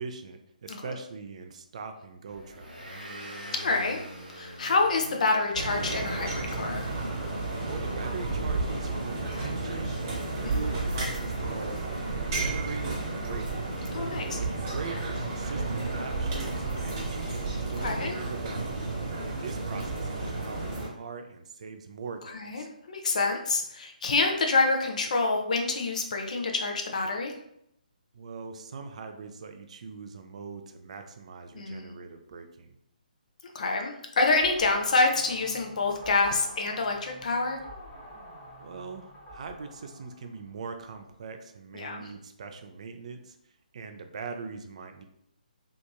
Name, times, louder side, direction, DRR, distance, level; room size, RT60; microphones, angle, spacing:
voice 1, 0.0-2.7 7.6-11.8 12.2-13.8 14.2-15.0 15.3-17.4 17.7-18.9 19.2-22.7 28.1-32.7 38.6-43.4 43.7-45.0, right 4 dB, 45° right, 6 dB, 0.3 m, -41 dB
Motor vehicle (road) / Engine, 2.3-16.5, right 1 dB, 75° right, 0.8 m, -48 dB
voice 2, 3.5-4.0 4.3-6.9 10.4-10.6 13.9-14.4 17.8-18.1 22.3-27.3 31.5-31.9 33.5-37.6 41.7-42.0, left 3 dB, 55° left, 3 dB, 0.5 m, -27 dB
sound 1, 5.5-20.9, right 3 dB, 30° right, 0.9 m, -32 dB
sound 2, 34.4-41.1, equal, ahead, 0.9 m, -48 dB
2.8 x 2.5 x 2.2 m, 0.76 s
figure-of-eight pair, 140°, 5 cm